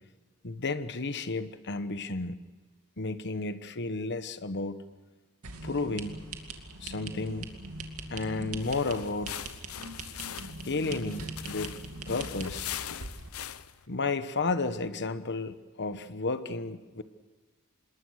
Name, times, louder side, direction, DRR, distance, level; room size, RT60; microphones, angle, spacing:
voice 1, 0.4-2.4 3.0-4.8 5.6-6.3 6.8-7.5 8.1-9.4 10.6-12.7 13.9-17.0, left 3 dB, 50° left, 11 dB, 1.2 m, -32 dB
sound 1, 5.4-13.3, right 2 dB, 80° right, 2.4 m, -41 dB
sound 2, 8.6-13.8, left 10 dB, 70° left, 0.8 m, -41 dB
26.5 x 21.5 x 6.5 m, 1.3 s
head